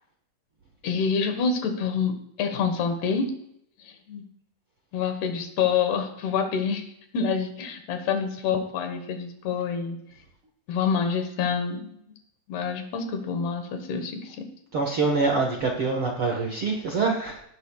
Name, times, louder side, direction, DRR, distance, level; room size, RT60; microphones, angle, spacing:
voice 1, 0.8-3.4 3.8-4.3 4.9-6.9 7.1-10.0 10.7-12.0 12.5-14.5, left 6 dB, 80° left, 6 dB, 3.4 m, -27 dB
voice 2, 14.7-17.4, right 4 dB, 60° right, 1 dB, 1.4 m, -25 dB
17.5 x 14.0 x 2.4 m, 0.73 s
omnidirectional pair, 4.6 m